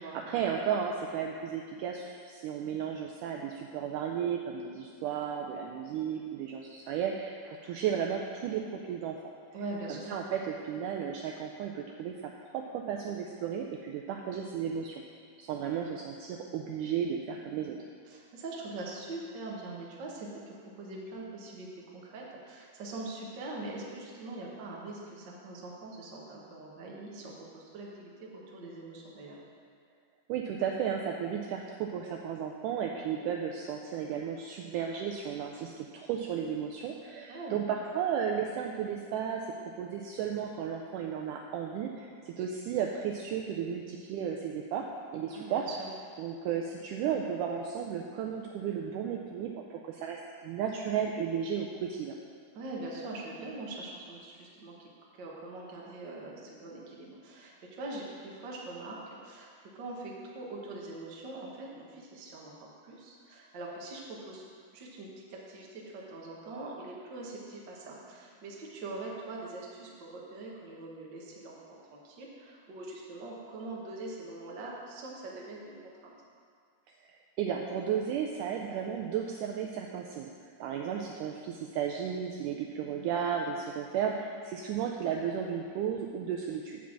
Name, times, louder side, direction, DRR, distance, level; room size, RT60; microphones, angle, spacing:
voice 1, 0.0-9.2 9.9-15.0 15.4-17.8 30.3-44.9 45.1-45.6 46.2-52.2 77.4-80.3 80.6-86.8, right 8 dB, 85° right, 1 dB, 1.8 m, -34 dB
voice 2, 9.5-10.1 18.0-21.7 21.9-29.4 37.3-37.6 45.3-45.9 52.5-54.9 55.1-64.4 64.7-76.1, right 2 dB, 60° right, -3 dB, 1.2 m, -43 dB
7.3 x 5.8 x 7.2 m, 2.1 s
omnidirectional pair, 4.1 m